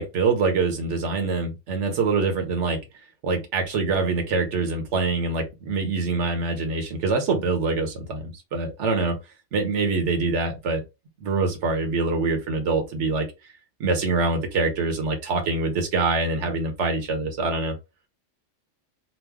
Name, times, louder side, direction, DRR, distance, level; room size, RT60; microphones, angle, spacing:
voice 1, 0.0-2.8 3.2-9.2 9.5-10.8 11.2-13.3 13.8-17.7, right 3 dB, 75° right, 1.2 m, -24 dB
3.1 x 2.1 x 3.4 m
omnidirectional pair, 1.2 m